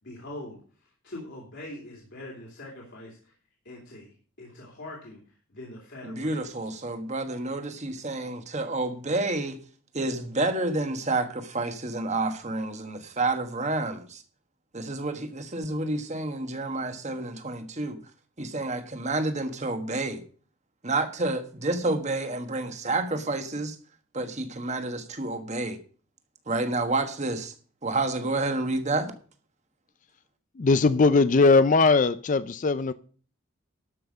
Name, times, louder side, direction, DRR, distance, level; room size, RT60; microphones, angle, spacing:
voice 1, 0.0-3.3 3.6-6.7, left 1 dB, 55° left, 2.9 m, -43 dB
voice 2, 6.0-9.6 9.9-14.2 14.7-18.0 18.4-20.2 20.8-23.7 24.1-25.8 26.5-27.5 27.8-29.1, right 2 dB, 30° right, 1.4 m, -29 dB
voice 3, 30.6-32.9, left 3 dB, 35° left, 0.4 m, -20 dB
12.5 x 5.7 x 6.5 m
head